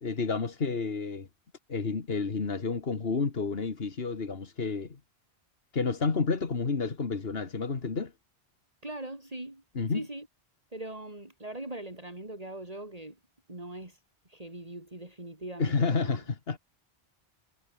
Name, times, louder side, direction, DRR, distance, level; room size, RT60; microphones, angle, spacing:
voice 1, 0.0-1.3 1.7-5.0 5.7-8.1 9.8-10.0 15.6-16.6, left 4 dB, 65° left, 2.0 m, -30 dB
voice 2, 8.8-9.6 9.9-10.3 10.7-13.2 13.5-16.2, right 1 dB, 35° right, 4.3 m, -41 dB
omnidirectional pair, 1.1 m